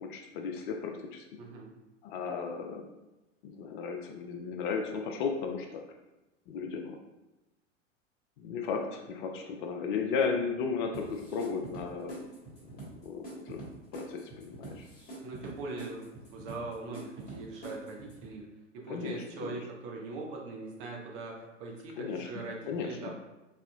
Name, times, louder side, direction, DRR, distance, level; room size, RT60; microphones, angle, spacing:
voice 1, 0.0-1.2 2.0-2.9 3.4-5.8 6.5-7.0 8.4-12.3 13.0-13.6 13.9-14.8 18.9-19.6 22.0-22.3 22.7-23.1, left 5 dB, 45° left, 3 dB, 0.4 m, -35 dB
voice 2, 1.4-1.7 15.2-18.5 18.7-23.1, right 3 dB, 45° right, -1 dB, 0.9 m, -41 dB
sound 1, 10.9-18.3, right 2 dB, 25° left, 1.3 m, -46 dB
4.1 x 2.8 x 2.2 m, 1.0 s
figure-of-eight pair, 90°, 38 cm